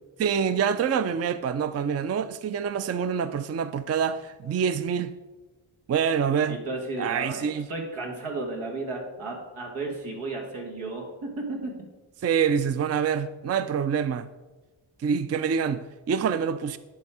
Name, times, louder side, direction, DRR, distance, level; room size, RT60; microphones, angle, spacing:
voice 1, 0.2-5.1 5.9-6.6 7.0-7.7 12.2-14.3 15.0-16.8, right 7 dB, 35° right, 0.4 m, -26 dB
voice 2, 6.5-11.7, right 2 dB, 90° right, 1.5 m, -34 dB
10.5 x 3.6 x 4.7 m
cardioid pair, 45°, 49 cm